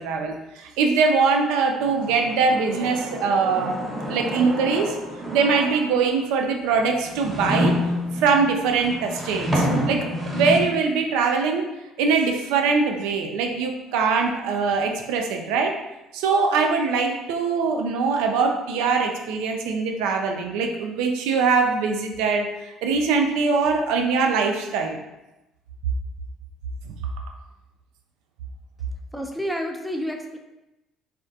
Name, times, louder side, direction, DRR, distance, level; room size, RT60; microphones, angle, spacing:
voice 1, 0.0-3.8 4.1-5.0 5.3-7.8 8.1-11.7 12.0-15.8 16.1-22.5 22.8-25.0 27.2-27.3, right 4 dB, 85° right, 3 dB, 0.3 m, -22 dB
sound 1, 1.8-6.2 6.8-10.6, equal, 20° right, 0.8 m, -28 dB
voice 2, 29.1-30.4, equal, ahead, 3 dB, 0.3 m, -29 dB
2.3 x 2.0 x 2.6 m, 0.97 s
supercardioid pair, 80°, 0 cm